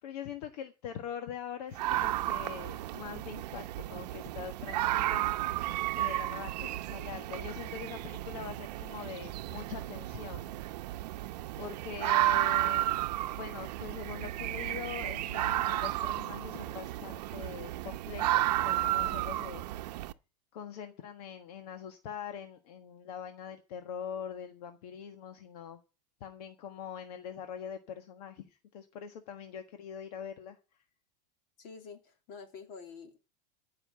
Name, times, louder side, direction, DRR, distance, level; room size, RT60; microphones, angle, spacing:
voice 1, 0.0-5.4 5.9-10.5 10.8-10.9 11.6-12.9 13.3-20.0 20.5-25.8 26.2-30.6, left 8 dB, 65° left, 7 dB, 1.4 m, -43 dB
sound 1, 1.8-20.1, right 15 dB, 75° right, 0.8 m, -33 dB
voice 2, 31.6-33.2, left 5 dB, 45° left, 6 dB, 2.8 m, -47 dB
15.0 x 5.8 x 8.7 m, 0.34 s
supercardioid pair, 155°, 21 cm